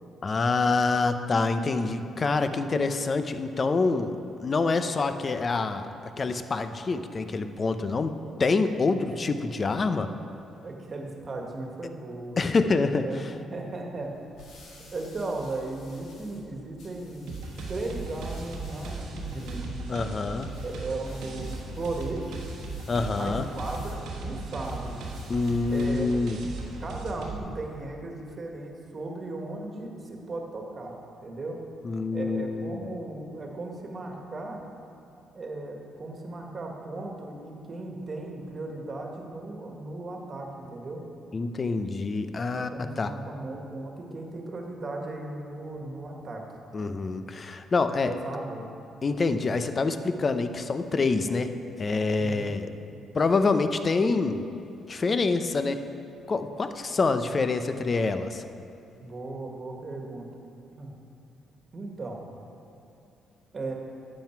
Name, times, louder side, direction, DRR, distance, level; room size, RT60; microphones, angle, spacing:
voice 1, 0.2-5.9 6.2-8.1 8.4-10.1 12.4-13.0 19.9-20.5 22.9-23.5 25.3-26.4 31.8-32.8 41.3-43.1 46.7-48.1 49.0-51.5 51.8-52.7 53.1-54.5 54.9-55.8 56.3-58.4, left 3 dB, 35° left, 9 dB, 0.6 m, -26 dB
voice 2, 10.6-12.4 13.0-14.2 14.9-17.3 17.7-19.7 20.6-22.4 23.2-25.0 25.7-26.1 26.8-31.6 32.1-34.7 35.3-41.0 42.5-46.4 48.0-48.7 52.2-52.5 59.0-60.3 60.8-60.9 61.7-62.2 63.5-63.7, right 2 dB, 40° right, 1 dB, 1.6 m, -36 dB
sound 1, 14.1-26.0, left 2 dB, 90° left, 2.2 m, -53 dB
sound 2, 17.3-27.4, right 2 dB, 90° right, 1.3 m, -37 dB
11.5 x 7.6 x 4.5 m, 2.7 s
cardioid pair, 90°, 0 cm